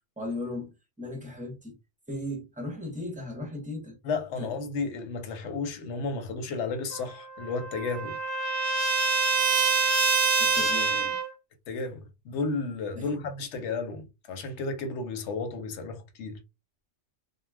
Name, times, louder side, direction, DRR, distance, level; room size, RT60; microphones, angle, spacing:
voice 1, 0.2-1.8 2.1-4.0 4.4-4.5 10.4-11.2 13.0-13.3, left 1 dB, 10° right, 0.5 m, -37 dB
voice 2, 4.0-8.2 11.7-16.4, left 4 dB, 80° left, 0.9 m, -33 dB
Trumpet, 6.9-11.3, right 5 dB, 65° right, 0.7 m, -26 dB
2.2 x 2.1 x 3.3 m
omnidirectional pair, 1.2 m